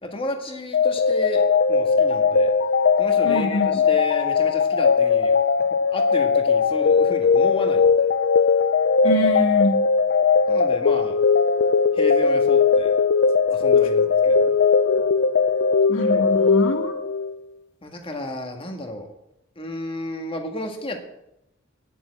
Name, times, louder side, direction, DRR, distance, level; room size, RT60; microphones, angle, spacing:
voice 1, 0.0-2.5 3.0-5.3 5.9-8.1 10.5-11.2 11.9-12.9 13.5-14.6 16.1-16.4 17.8-19.1 19.5-21.0, left 1 dB, 25° left, 4 dB, 1.6 m, -32 dB
sound 1, 0.7-17.3, left 5 dB, 55° left, 0.4 m, -19 dB
voice 2, 3.2-3.8 9.0-9.8 15.9-16.9, left 1 dB, 85° left, 3 dB, 1.5 m, -24 dB
10.5 x 7.0 x 8.4 m, 0.83 s
head